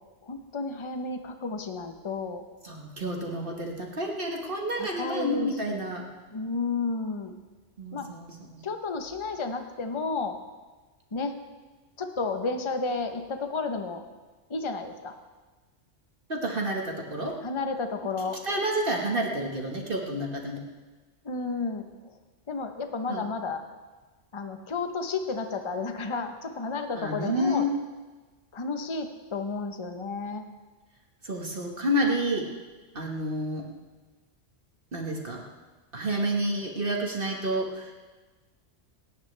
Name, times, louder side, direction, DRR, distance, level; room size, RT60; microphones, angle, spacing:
voice 1, 0.2-2.4 4.8-5.9 6.3-7.4 7.9-8.1 8.6-10.4 11.1-11.4 12.0-14.1 14.5-15.2 17.4-18.4 21.2-22.2 22.5-23.6 24.3-27.7 28.5-30.4, left 4 dB, 25° left, 6 dB, 0.9 m, -32 dB
voice 2, 2.6-6.0 7.8-8.6 16.3-17.3 18.4-20.6 23.1-23.2 27.0-27.7 31.2-32.4 32.9-33.7 34.9-35.4 35.9-37.9, right 1 dB, 45° right, 0 dB, 1.7 m, -29 dB
27.5 x 9.5 x 3.3 m, 1.3 s
omnidirectional pair, 1.2 m